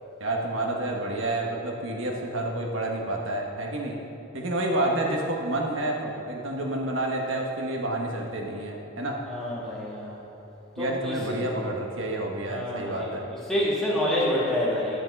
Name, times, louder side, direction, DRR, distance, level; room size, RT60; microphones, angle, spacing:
voice 1, 0.2-4.0 4.3-9.2 10.8-13.2, right 1 dB, 65° right, 0 dB, 1.4 m, -29 dB
voice 2, 9.3-10.2 10.8-11.4 12.5-13.1 13.5-15.0, left 1 dB, ahead, -8 dB, 2.2 m, -27 dB
10.5 x 8.7 x 5.4 m, 2.8 s
head